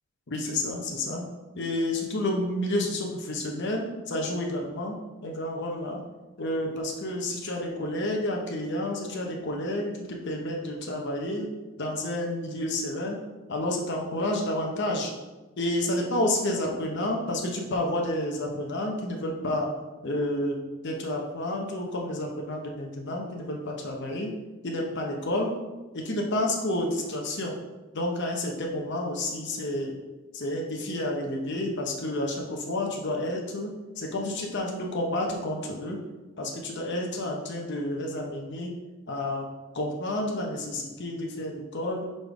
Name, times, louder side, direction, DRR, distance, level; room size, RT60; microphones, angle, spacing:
voice 1, 0.3-1.2 1.6-4.9 5.2-6.0 6.4-11.5 11.8-13.2 13.5-15.1 15.6-19.7 20.0-20.6 20.8-24.3 24.6-25.5 25.9-27.5 27.9-30.0 30.3-33.7 34.0-36.0 36.4-38.7 39.1-39.5 39.7-42.0, left 1 dB, 60° left, 0 dB, 0.8 m, -30 dB
5.1 x 4.3 x 4.7 m, 1.2 s
head